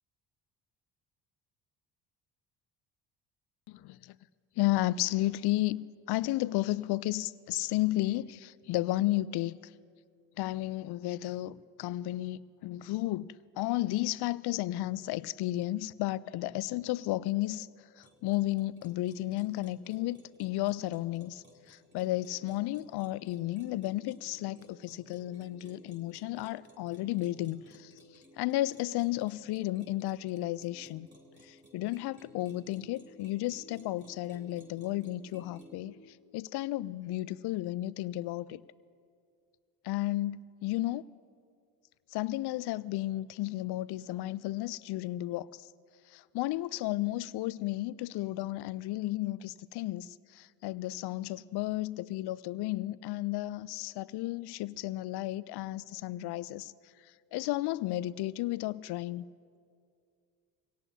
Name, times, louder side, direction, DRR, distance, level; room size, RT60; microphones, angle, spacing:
voice 1, 3.7-4.2 4.6-9.6 10.4-17.7 18.0-31.1 31.4-38.6 39.8-41.0 42.1-45.7 46.1-56.7 57.0-59.2, left 16 dB, 55° left, 0.5 m, -33 dB
sound 1, 18.0-35.8, equal, 20° right, 3.3 m, -58 dB
24.0 x 17.5 x 2.8 m
hypercardioid pair, 60°, 48 cm